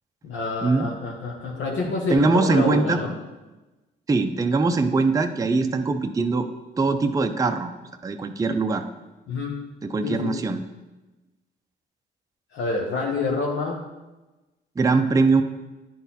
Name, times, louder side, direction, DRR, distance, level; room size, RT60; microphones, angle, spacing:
voice 1, 0.2-3.1 9.3-9.7 10.0-10.3 12.5-13.8, left 3 dB, 75° left, -1 dB, 1.2 m, -27 dB
voice 2, 2.1-3.0 4.1-6.5 6.8-7.7 8.0-8.8 9.8-10.6 14.8-15.4, right 3 dB, 15° right, 6 dB, 0.5 m, -21 dB
10.0 x 4.0 x 4.1 m, 1.1 s
cardioid pair, 90°, 20 cm